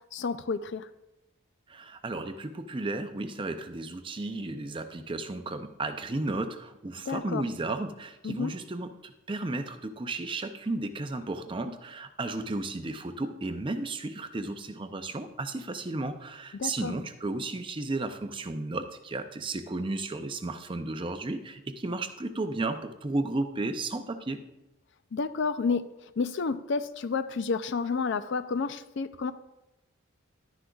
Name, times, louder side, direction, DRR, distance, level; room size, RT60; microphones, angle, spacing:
voice 1, 0.1-0.9 7.1-7.4 8.2-8.5 16.5-16.9 25.1-25.8 26.2-29.3, left 4 dB, 60° left, 12 dB, 0.4 m, -30 dB
voice 2, 1.7-24.4, right 2 dB, 25° right, 8 dB, 0.5 m, -34 dB
12.0 x 9.9 x 2.3 m, 0.95 s
head